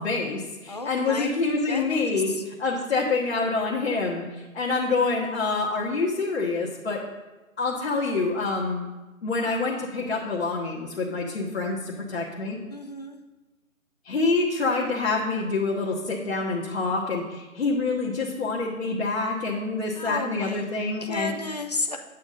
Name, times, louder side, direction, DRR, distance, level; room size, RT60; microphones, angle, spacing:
voice 1, 0.0-7.0 7.6-8.9 9.2-12.6 14.0-21.3, left 3 dB, 50° left, -3 dB, 1.4 m, -26 dB
voice 2, 0.7-1.4 1.7-2.4 12.7-13.2 20.0-20.7 21.0-22.0, left 2 dB, 30° left, 4 dB, 0.4 m, -33 dB
8.9 x 8.4 x 4.0 m, 1.1 s
figure-of-eight pair, 150°, 42 cm